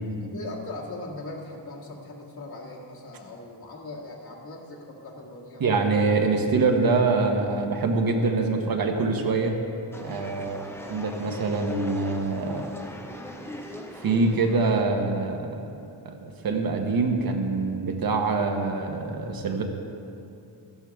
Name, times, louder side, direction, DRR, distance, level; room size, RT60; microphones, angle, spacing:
voice 1, 0.2-5.6, left 2 dB, 55° left, -2 dB, 1.8 m, -40 dB
voice 2, 5.6-9.5 10.0-10.6 10.9-12.7 14.0-15.6 16.0-19.6, right 3 dB, 50° right, 3 dB, 1.1 m, -24 dB
sound 1, 9.9-14.9, left 1 dB, 5° left, 0.5 m, -40 dB
14.0 x 12.5 x 3.5 m, 2.6 s
wide cardioid pair, 175°, 44 cm